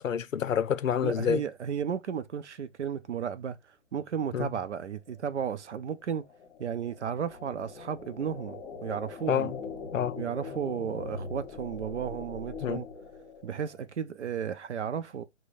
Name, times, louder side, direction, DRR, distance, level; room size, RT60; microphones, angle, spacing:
voice 1, 0.0-1.4 4.3-4.5 9.3-9.6 9.9-10.3 12.6-12.9, left 8 dB, 85° left, 0.5 m, -28 dB
voice 2, 1.0-3.6 3.9-6.2 6.6-9.5 10.2-12.9 13.4-15.3, right 8 dB, 60° right, 0.6 m, -34 dB
sound 1, 4.9-13.8, left 4 dB, 25° left, 1.2 m, -43 dB
6.0 x 2.1 x 2.6 m
figure-of-eight pair, 135°, 38 cm